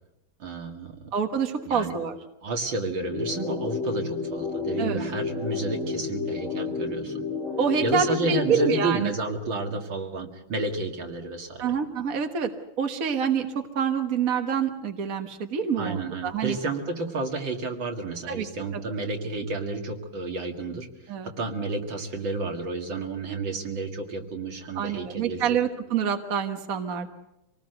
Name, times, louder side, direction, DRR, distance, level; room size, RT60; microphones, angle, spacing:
voice 1, 0.4-1.0 1.7-1.9 2.4-7.3 7.8-11.7 15.8-25.4, right 3 dB, 70° right, 3 dB, 2.9 m, -31 dB
voice 2, 1.1-2.2 4.8-5.0 7.6-9.1 11.6-12.5 12.8-16.6 18.3-18.5 18.7-18.8 21.1-21.3 24.8-27.1, right 7 dB, 45° right, 5 dB, 1.8 m, -27 dB
sound 1, 3.0-9.0, left 4 dB, 40° left, 5.0 m, -31 dB
25.5 x 19.0 x 8.0 m, 0.90 s
omnidirectional pair, 2.2 m